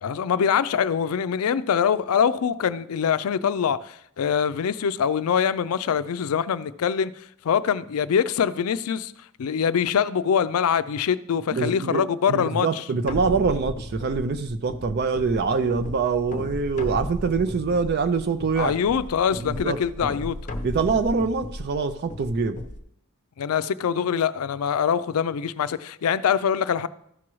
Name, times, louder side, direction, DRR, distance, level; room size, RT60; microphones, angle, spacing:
voice 1, 0.0-7.1 7.4-9.1 9.4-12.8 18.6-20.4 23.4-26.9, left 7 dB, 80° left, 0.4 m, -24 dB
voice 2, 11.5-12.0 12.3-18.7 19.4-19.8 20.6-22.6, right 4 dB, 50° right, 0.4 m, -24 dB
sound 1, 13.1-22.8, left 1 dB, 35° left, 0.7 m, -35 dB
14.0 x 6.1 x 3.1 m
head